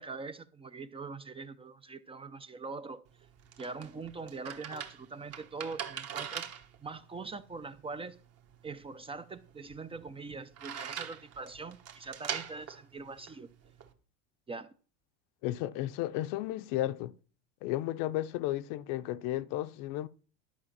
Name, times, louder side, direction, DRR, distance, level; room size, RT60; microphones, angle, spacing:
voice 1, 0.0-3.1 3.6-6.5 6.8-8.2 8.6-13.5 14.5-14.7, right 4 dB, 15° right, 0.5 m, -42 dB
sound 1, 3.1-13.9, right 9 dB, 40° right, 1.4 m, -43 dB
voice 2, 15.4-17.1 17.6-20.1, left 15 dB, 60° left, 0.7 m, -33 dB
11.5 x 5.0 x 7.2 m
supercardioid pair, 120°, 38 cm